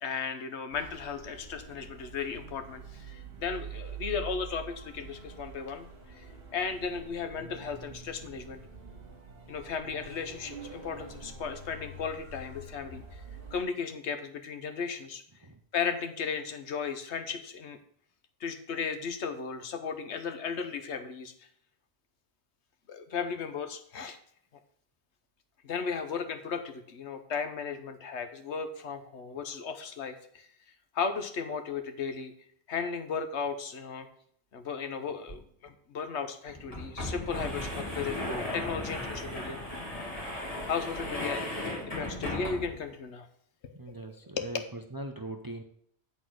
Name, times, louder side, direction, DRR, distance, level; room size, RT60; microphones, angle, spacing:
voice 1, 0.0-5.9 6.1-6.2 6.5-8.6 9.5-13.2 13.5-15.2 15.7-17.8 18.4-21.3 22.9-24.2 25.6-30.5 30.9-32.3 32.7-34.1 34.5-39.6 40.7-41.5 42.0-43.3 43.6-44.1 44.3-44.5, left 6 dB, 85° left, 8 dB, 1.2 m, -35 dB
sound 1, 0.7-13.6, right 4 dB, 60° right, 1.6 m, -46 dB
sound 2, 35.3-35.4 35.7-35.8 36.5-42.9, left 1 dB, 35° left, 1.8 m, -36 dB
voice 2, 43.7-45.6, right 1 dB, 25° right, 5 dB, 0.5 m, -41 dB
8.2 x 4.1 x 6.2 m, 0.64 s
omnidirectional pair, 1.1 m